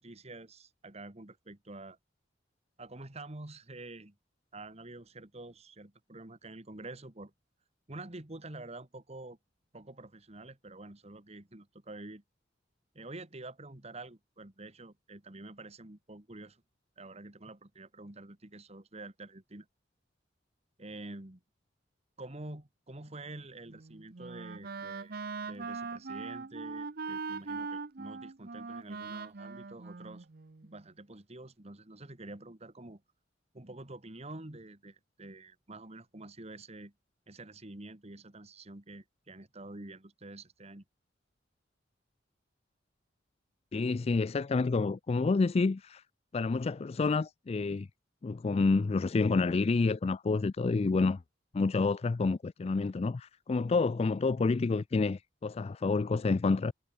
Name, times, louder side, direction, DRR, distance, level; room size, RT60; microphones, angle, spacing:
voice 1, 0.0-2.0 2.8-4.1 4.5-7.3 7.9-9.4 9.7-12.2 12.9-16.6 17.0-19.7 20.8-21.4 22.2-25.2 25.4-30.3 30.6-33.0 33.5-36.9 37.3-40.8, right 2 dB, 35° right, 1.9 m, -47 dB
Wind instrument woodwind instrument, 23.7-30.8, right 4 dB, 55° right, 0.8 m, -41 dB
voice 2, 43.7-46.0 46.3-47.9 48.2-51.2 51.5-56.7, left 3 dB, 35° left, 0.4 m, -28 dB
head